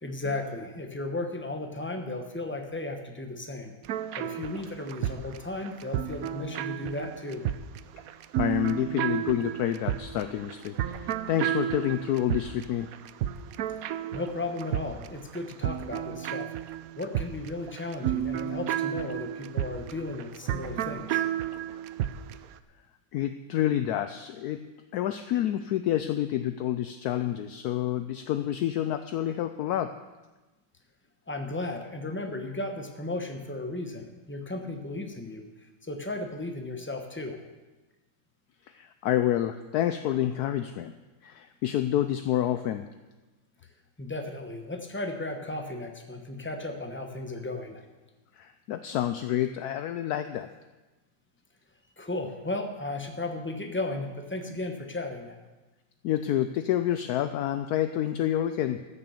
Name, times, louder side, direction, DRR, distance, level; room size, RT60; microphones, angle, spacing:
voice 1, 0.0-3.8 4.2-7.4 14.1-21.2 31.3-37.4 44.0-47.8 52.0-55.4, left 2 dB, 10° left, 5 dB, 0.6 m, -35 dB
sound 1, 3.8-22.4, right 11 dB, 90° right, 0.7 m, -32 dB
voice 2, 8.4-12.9 23.1-24.6 24.9-30.0 38.7-40.9 41.2-42.9 48.3-50.5 56.0-58.8, left 12 dB, 75° left, 10 dB, 0.9 m, -28 dB
14.0 x 6.7 x 7.1 m, 1.2 s
omnidirectional pair, 2.1 m